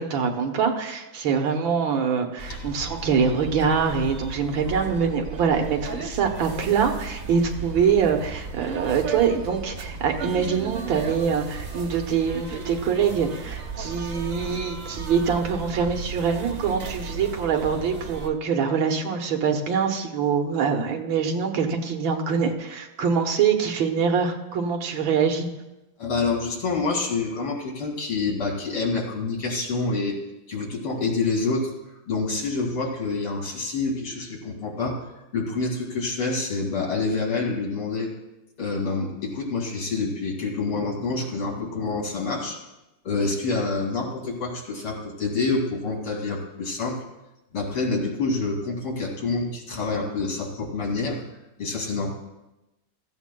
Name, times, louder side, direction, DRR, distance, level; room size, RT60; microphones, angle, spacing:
voice 1, 0.0-25.5, right 6 dB, 70° right, 3 dB, 1.8 m, -24 dB
sound 1, 2.4-18.3, right 4 dB, 45° right, 0.8 m, -35 dB
voice 2, 26.0-30.2 30.5-31.7 32.1-35.0 35.3-38.1 38.6-42.6 43.0-47.0 47.5-51.2 51.6-52.1, left 3 dB, 90° left, -2 dB, 3.3 m, -27 dB
16.0 x 14.5 x 2.3 m, 0.98 s
omnidirectional pair, 2.3 m